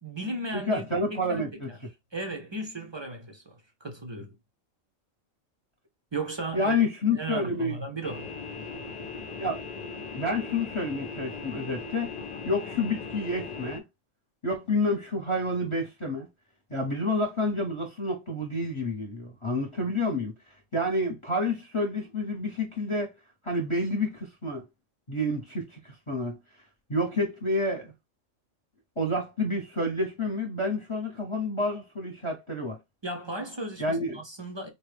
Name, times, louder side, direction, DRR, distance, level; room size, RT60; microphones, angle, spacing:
voice 1, 0.0-1.8 2.1-4.3 6.1-6.8 7.1-8.3 11.5-11.6 33.0-34.7, right 2 dB, 40° right, 0.4 m, -36 dB
voice 2, 0.5-1.7 6.5-7.8 9.4-9.6 10.1-12.1 12.4-13.8 14.4-16.3 16.7-20.3 20.7-23.1 23.4-24.6 25.1-26.4 26.9-27.9 29.0-32.8 33.8-34.2, left 1 dB, 25° left, 0.8 m, -29 dB
sound 1, 8.0-13.8, left 4 dB, 55° left, 0.4 m, -39 dB
4.1 x 2.2 x 3.3 m
omnidirectional pair, 1.4 m